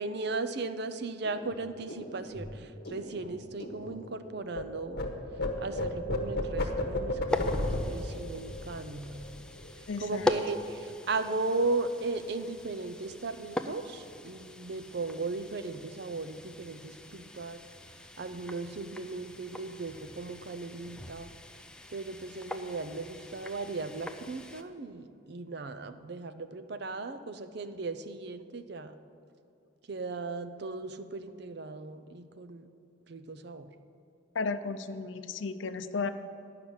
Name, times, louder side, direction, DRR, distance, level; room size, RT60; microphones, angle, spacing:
voice 1, 0.0-5.2 5.6-9.2 10.0-17.6 18.2-21.3 21.9-29.0 29.9-32.7 33.1-33.7, right 3 dB, 55° right, 10 dB, 0.5 m, -37 dB
sound 1, 1.2-4.6 4.9-9.9 10.2-10.4 10.7-11.3, left 1 dB, 55° left, 1.1 m, -35 dB
sound 2, 7.3-24.6, left 1 dB, 5° left, 0.4 m, -40 dB
voice 2, 9.9-10.3 34.3-36.1, left 4 dB, 70° left, 11 dB, 0.5 m, -34 dB
10.5 x 5.8 x 8.6 m, 2.6 s
head